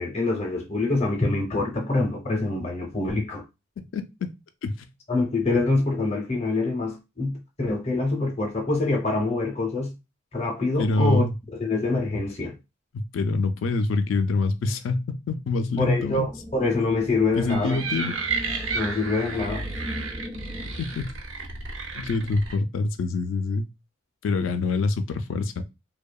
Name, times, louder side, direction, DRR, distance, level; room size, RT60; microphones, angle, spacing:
voice 1, 0.0-3.4 5.1-7.3 7.6-9.9 10.3-11.2 11.5-12.5 15.8-17.8 18.7-19.6, left 3 dB, 30° left, 0.6 m, -25 dB
voice 2, 3.8-4.3 4.6-4.9 10.8-11.3 12.9-16.3 17.4-18.2 20.8-21.1 21.9-23.7 24.2-25.6, left 3 dB, 70° left, 0.3 m, -26 dB
sound 1, 16.0-21.0, left 1 dB, 15° right, 0.3 m, -40 dB
sound 2, 17.4-22.5, right 4 dB, 70° right, 0.5 m, -32 dB
2.7 x 2.1 x 2.2 m
head